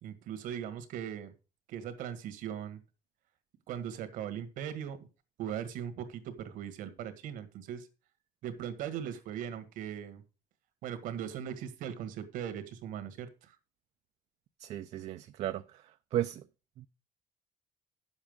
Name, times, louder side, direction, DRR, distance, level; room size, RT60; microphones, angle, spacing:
voice 1, 0.0-1.3 1.7-2.8 3.7-5.0 5.4-7.9 8.4-10.2 10.8-13.5, right 9 dB, 85° right, 1.7 m, -39 dB
voice 2, 14.6-15.8 16.1-16.4 16.8-16.9, right 12 dB, 50° right, 0.5 m, -35 dB
10.0 x 7.3 x 5.2 m
cardioid pair, 170°, 14 cm